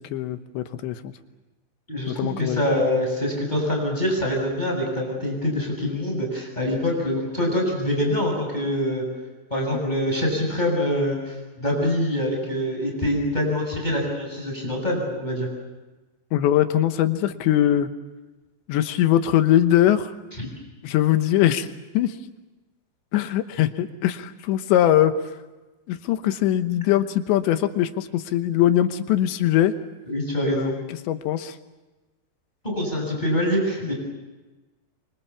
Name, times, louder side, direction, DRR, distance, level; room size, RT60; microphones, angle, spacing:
voice 1, 0.1-1.1 2.1-2.6 16.3-17.9 18.7-20.1 20.8-21.7 21.9-22.1 23.1-25.1 25.9-29.7 30.6-31.6, left 12 dB, 80° left, 9 dB, 3.3 m, -21 dB
voice 2, 1.9-9.0 9.5-15.5 20.4-20.5 30.1-30.7 32.6-33.9, left 1 dB, 10° left, 1 dB, 7.0 m, -25 dB
25.5 x 25.0 x 7.2 m, 1.1 s
omnidirectional pair, 5.1 m